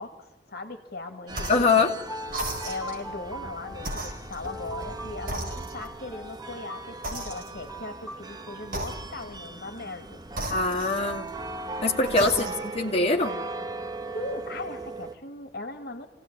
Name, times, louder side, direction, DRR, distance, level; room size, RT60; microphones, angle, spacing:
voice 1, 0.0-2.0 2.6-10.2 10.7-11.0 12.2-12.5 14.1-16.1, left 2 dB, 60° left, 6 dB, 2.1 m, -38 dB
sound 1, 1.3-15.1, right 2 dB, 25° right, 1.2 m, -39 dB
sound 2, 1.3-1.7 2.3-3.1 3.8-4.9 5.3-6.1 7.0-7.8 8.7-9.4 10.3-11.4 12.0-12.8, right 1 dB, 55° right, 5.0 m, -36 dB
voice 2, 1.5-2.0 10.5-11.3 11.8-12.5 12.7-13.4, left 3 dB, 35° left, -2 dB, 2.4 m, -23 dB
sound 3, 2.1-8.8, equal, ahead, 1.7 m, -42 dB
26.5 x 17.5 x 8.9 m, 0.95 s
head